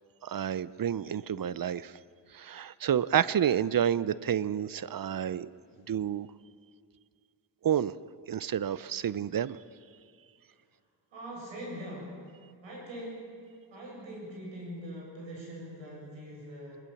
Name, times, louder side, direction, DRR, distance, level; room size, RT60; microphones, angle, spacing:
voice 1, 0.2-1.9 2.3-5.5 5.9-6.3 7.6-7.9 8.3-9.6, right 9 dB, 50° right, 18 dB, 0.7 m, -29 dB
voice 2, 11.1-12.1 12.6-13.4 13.7-16.8, equal, 85° right, -2 dB, 7.8 m, -42 dB
21.5 x 20.5 x 7.2 m, 2.3 s
cardioid pair, 55°, 45 cm